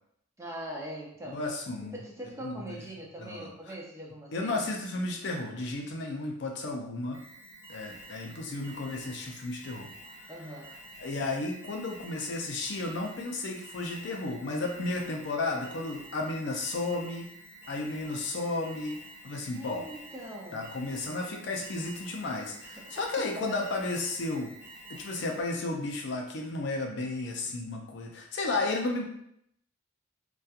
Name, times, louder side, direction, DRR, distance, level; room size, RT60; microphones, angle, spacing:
voice 1, 0.4-1.4 1.9-4.7 10.3-10.7 19.5-20.6 22.4-22.5 22.8-23.6, right 1 dB, 15° right, -3 dB, 0.4 m, -42 dB
voice 2, 1.3-2.0 2.4-2.7 3.2-3.5 4.3-7.2 7.7-9.9 10.2-10.3 11.0-17.3 17.7-19.0 19.2-19.9 20.5-24.5 24.9-29.0, left 2 dB, 60° left, 1 dB, 0.4 m, -33 dB
Alarm, 7.1-25.5, right 1 dB, 20° left, 0.9 m, -49 dB
2.7 x 2.3 x 2.3 m, 0.73 s
head